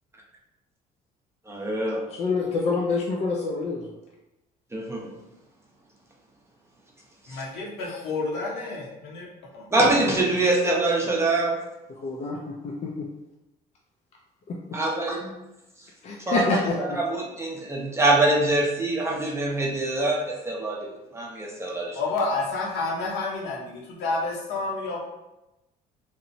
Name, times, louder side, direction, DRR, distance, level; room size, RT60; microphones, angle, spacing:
voice 1, 1.5-2.0 4.7-5.1 7.3-7.4 9.7-11.6 14.7-15.3 16.3-22.0, right 2 dB, 15° right, -2 dB, 0.5 m, -24 dB
voice 2, 2.1-4.0 10.2-10.3 11.9-13.1 14.5-14.8 16.0-17.0, left 3 dB, 40° left, -2 dB, 0.4 m, -27 dB
voice 3, 7.3-9.3 9.5-9.7 21.9-25.0, left 3 dB, 85° left, -3 dB, 0.8 m, -29 dB
2.8 x 2.0 x 2.6 m, 0.95 s
cardioid pair, 110°, 17 cm